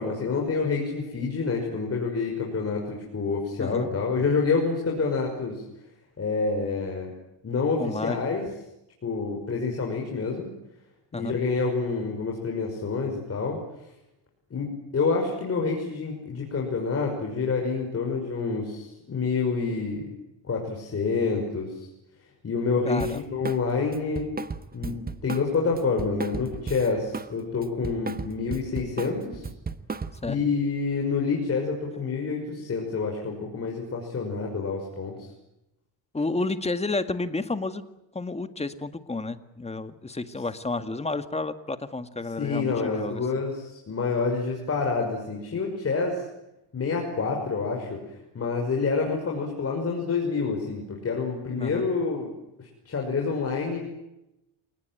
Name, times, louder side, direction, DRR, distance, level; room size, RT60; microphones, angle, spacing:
voice 1, 0.0-5.6 6.2-7.1 7.4-8.4 9.0-10.5 11.1-13.6 14.5-20.1 20.4-21.9 22.4-24.3 24.7-29.5 30.3-35.2 42.4-46.2 46.7-48.0 48.3-52.3 52.6-53.8, left 4 dB, 30° left, 0 dB, 5.9 m, -27 dB
voice 2, 3.6-3.9 7.8-8.3 11.1-11.4 22.8-23.3 30.2-30.4 36.1-37.8 38.1-43.2 51.6-51.9, left 3 dB, 15° left, 10 dB, 2.0 m, -31 dB
Drum kit, 23.0-23.6 23.9-27.3 27.6-30.4, right 4 dB, 20° right, 1.4 m, -35 dB
28.5 x 19.0 x 9.1 m, 0.90 s
cardioid pair, 100°, 45 cm